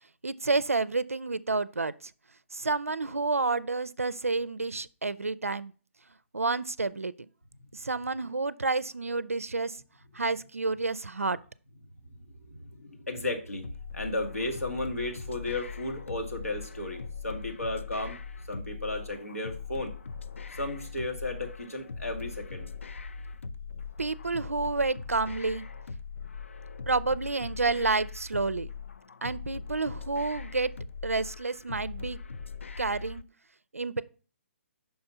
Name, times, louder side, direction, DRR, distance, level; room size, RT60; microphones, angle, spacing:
voice 1, 0.2-2.1 2.5-5.7 6.3-7.1 7.7-9.8 10.1-11.4 24.0-25.7 26.9-28.7 29.2-30.7 31.0-32.2 32.8-33.2 33.7-34.0, right 3 dB, 80° right, 0.4 m, -29 dB
voice 2, 12.5-13.7 13.9-18.2 18.5-19.9 20.5-22.7, left 2 dB, 85° left, 1.6 m, -34 dB
sound 1, 13.6-33.2, left 5 dB, 60° left, 0.4 m, -41 dB
5.7 x 4.3 x 5.4 m
figure-of-eight pair, 135°, 8 cm